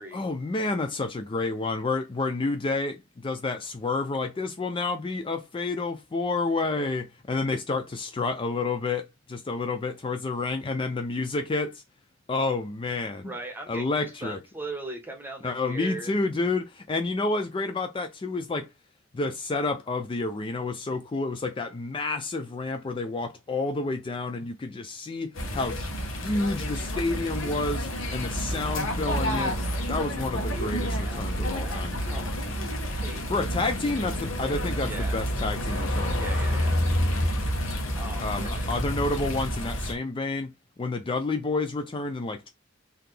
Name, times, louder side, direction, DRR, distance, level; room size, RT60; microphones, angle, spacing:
voice 1, 0.1-11.8 12.3-13.3 13.7-14.4 15.4-18.7 19.1-29.6 29.9-31.9 33.3-36.6 38.2-40.5 40.8-42.5, left 3 dB, 25° left, 0.4 m, -29 dB
voice 2, 13.2-16.2 30.9-32.3 32.9-33.2 34.8-35.2 36.2-36.9 38.0-38.7, right 2 dB, 10° right, 1.0 m, -39 dB
sound 1, 25.3-39.9, equal, 80° left, 1.1 m, -29 dB
4.0 x 2.8 x 3.2 m
head